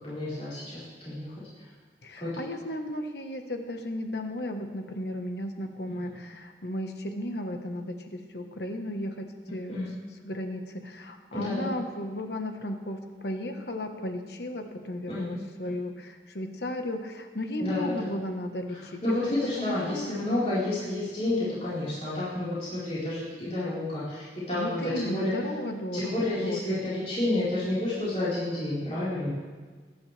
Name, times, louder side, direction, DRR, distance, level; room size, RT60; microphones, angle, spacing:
voice 1, 0.0-1.3 2.2-2.3 5.9-6.1 9.7-9.9 11.3-11.7 15.1-15.7 17.6-18.1 18.7-25.3 25.9-29.3, left 1 dB, 35° left, -12 dB, 4.5 m, -30 dB
voice 2, 2.0-9.9 10.2-19.3 19.6-20.2 24.5-26.8, left 1 dB, 65° left, 5 dB, 1.3 m, -35 dB
23.5 x 10.5 x 3.4 m, 1.4 s
head